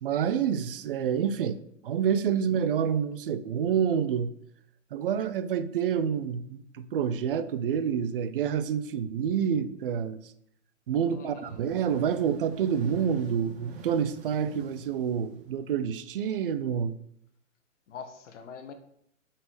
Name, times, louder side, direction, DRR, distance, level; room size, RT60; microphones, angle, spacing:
voice 1, 0.0-1.6 1.8-4.3 4.9-10.2 10.9-16.9, right 8 dB, 45° right, 0.6 m, -28 dB
voice 2, 11.0-11.6 17.9-18.7, left 6 dB, 60° left, 1.5 m, -44 dB
sound 1, 11.3-15.9, right 5 dB, 20° right, 0.9 m, -46 dB
8.1 x 6.0 x 4.9 m
hypercardioid pair, 150°, 40 cm